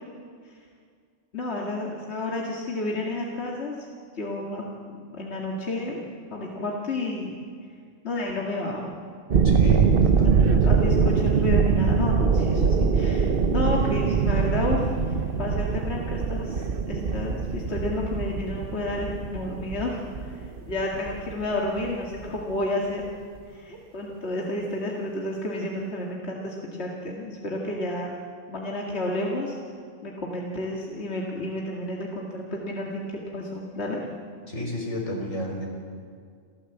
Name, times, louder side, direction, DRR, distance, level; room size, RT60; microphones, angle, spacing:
voice 1, 1.3-3.9 4.1-7.4 8.0-9.0 10.4-23.0 23.5-28.1 28.5-29.6 30.0-34.2, left 1 dB, 55° left, -2 dB, 2.4 m, -31 dB
sound 1, 9.3-21.9 22.2-22.5, right 5 dB, 50° right, 1.0 m, -23 dB
voice 2, 9.4-10.7 34.5-35.7, left 1 dB, 80° left, 0 dB, 4.7 m, -31 dB
29.0 x 14.0 x 8.1 m, 2.1 s
omnidirectional pair, 1.3 m